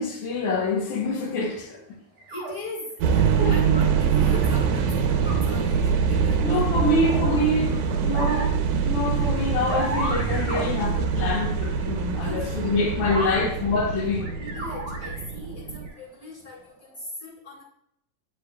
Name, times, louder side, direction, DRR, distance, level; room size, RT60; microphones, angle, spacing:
voice 1, 0.0-1.8 3.4-3.6 6.4-7.7 8.0-14.3, left 2 dB, 80° left, 1.3 m, -26 dB
voice 2, 1.9-7.5 11.8-11.9 12.2-12.8 13.1-13.3 14.1-17.6, left 2 dB, 35° left, 1.5 m, -40 dB
sound 1, 2.2-2.5 4.3-4.8 5.1-5.3 7.0-7.2 7.9-8.5 9.7-10.6 13.1-13.4 14.2-15.3 15.8-16.0, right 2 dB, 50° right, 1.3 m, -32 dB
sound 2, 3.0-15.9, right 6 dB, 75° right, 2.0 m, -24 dB
8.8 x 5.3 x 2.3 m
omnidirectional pair, 3.9 m